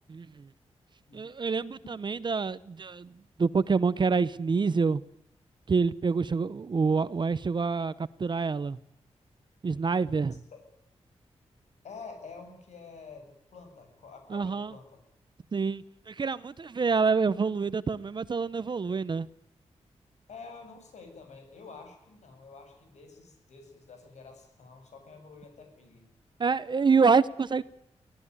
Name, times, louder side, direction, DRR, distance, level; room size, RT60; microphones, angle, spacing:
voice 1, 0.1-0.5 1.1-3.1 3.4-5.0 5.7-8.8 9.6-10.4 14.3-14.7 15.5-19.3 26.4-27.6, right 5 dB, 40° right, 0.8 m, -27 dB
voice 2, 11.8-15.0 20.3-26.1, left 4 dB, 90° left, 8.0 m, -48 dB
24.5 x 16.5 x 9.8 m
wide cardioid pair, 125°, 11 cm